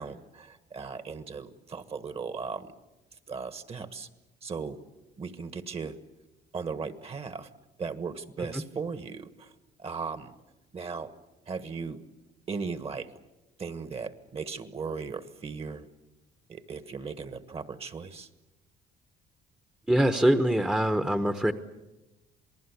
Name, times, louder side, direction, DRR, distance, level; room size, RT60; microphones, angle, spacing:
voice 1, 0.0-2.7 3.3-4.1 4.4-4.8 5.2-6.0 6.5-7.5 7.8-9.5 9.8-10.3 10.7-11.1 11.5-12.0 12.5-13.1 13.6-15.9 16.5-18.3, right 5 dB, 35° right, 12 dB, 1.5 m, -37 dB
voice 2, 19.9-21.5, right 1 dB, 5° right, 9 dB, 1.0 m, -24 dB
27.5 x 19.5 x 8.3 m, 1.0 s
cardioid pair, 110°, 17 cm